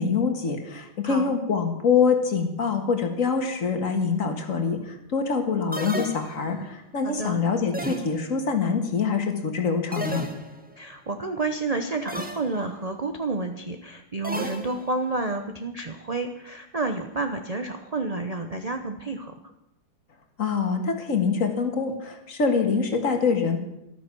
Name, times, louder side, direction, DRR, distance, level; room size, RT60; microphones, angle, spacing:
voice 1, 0.0-10.3 20.4-23.6, left 5 dB, 45° left, 5 dB, 2.0 m, -25 dB
voice 2, 1.0-1.3 7.0-7.4 10.8-19.3, right 3 dB, 45° right, 6 dB, 0.5 m, -30 dB
sound 1, 5.7-6.7 7.7-8.5 9.9-10.8 12.1-12.6 14.2-15.1, right 1 dB, 5° right, 1.0 m, -34 dB
13.5 x 12.5 x 6.1 m, 0.87 s
omnidirectional pair, 2.1 m